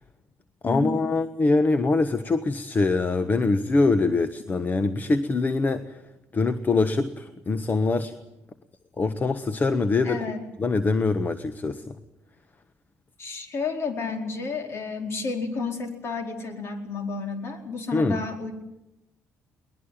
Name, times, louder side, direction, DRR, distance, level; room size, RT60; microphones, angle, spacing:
voice 1, 0.6-6.0 6.3-8.1 9.0-10.2 10.6-12.0 17.9-18.2, left 3 dB, 35° left, 11 dB, 1.3 m, -23 dB
voice 2, 10.0-10.4 13.2-18.5, left 4 dB, 55° left, 5 dB, 4.6 m, -31 dB
22.5 x 20.5 x 9.0 m, 0.92 s
supercardioid pair, 80°, 5 cm